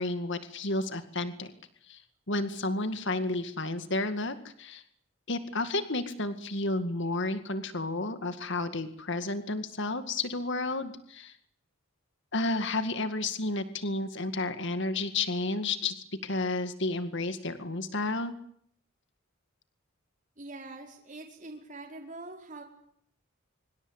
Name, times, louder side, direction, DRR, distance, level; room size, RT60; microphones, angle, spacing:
voice 1, 0.0-1.5 1.9-2.0 2.3-4.8 5.3-11.3 12.3-18.3, left 2 dB, 60° left, 10 dB, 2.1 m, -31 dB
voice 2, 20.4-22.6, right 2 dB, 35° right, 1 dB, 5.0 m, -44 dB
25.0 x 24.5 x 8.2 m, 0.67 s
head